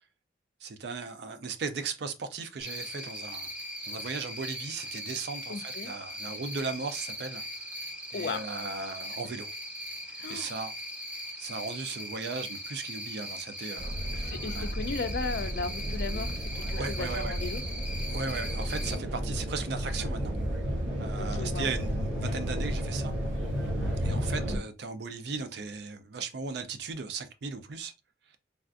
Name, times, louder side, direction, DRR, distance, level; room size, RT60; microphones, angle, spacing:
voice 1, 0.6-3.5 3.9-7.4 8.1-9.5 10.3-10.8 11.4-14.6 16.7-17.4 18.1-20.3 20.6-23.2 24.0-27.9, right 4 dB, 65° right, 0.4 m, -37 dB
Cricket, 2.6-19.0, equal, 10° right, 0.6 m, -40 dB
voice 2, 5.5-5.9 8.1-8.6 10.2-10.5 14.1-17.6 21.2-21.7, left 4 dB, 60° left, 0.4 m, -36 dB
sound 1, 13.8-24.6, equal, 90° right, 1.0 m, -32 dB
3.4 x 2.4 x 2.4 m
head